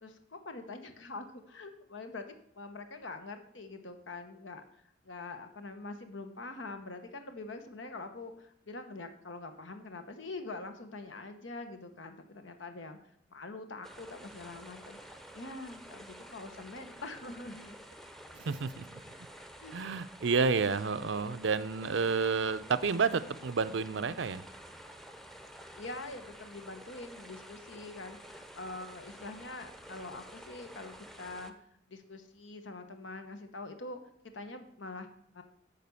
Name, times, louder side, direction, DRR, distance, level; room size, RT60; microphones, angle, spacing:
voice 1, 0.0-13.0 13.3-17.8 19.6-19.7 25.8-31.5 31.9-34.0 34.3-35.4, left 3 dB, 85° left, 7 dB, 1.0 m, -44 dB
sound 1, 13.8-31.5, equal, ahead, 0.6 m, -50 dB
voice 2, 18.3-19.0 19.7-24.4, right 5 dB, 80° right, 14 dB, 0.5 m, -30 dB
9.2 x 5.1 x 6.9 m, 0.68 s
head